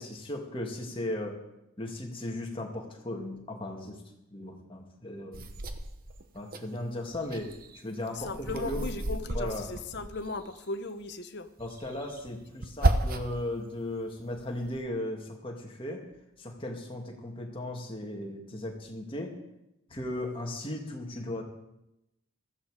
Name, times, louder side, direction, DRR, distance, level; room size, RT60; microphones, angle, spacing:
voice 1, 0.0-1.4 1.8-4.0 4.3-5.4 6.3-7.5 7.8-8.8 9.3-9.7 11.6-16.0 16.4-19.4 19.9-21.4, left 1 dB, 25° left, 1 dB, 2.1 m, -36 dB
sound 1, 5.3-6.6 7.0-10.6 11.6-13.5 13.9-14.8, right 1 dB, 45° right, 1.0 m, -33 dB
voice 2, 8.1-11.5, left 3 dB, 55° left, 9 dB, 1.0 m, -37 dB
15.0 x 14.0 x 4.9 m, 0.89 s
head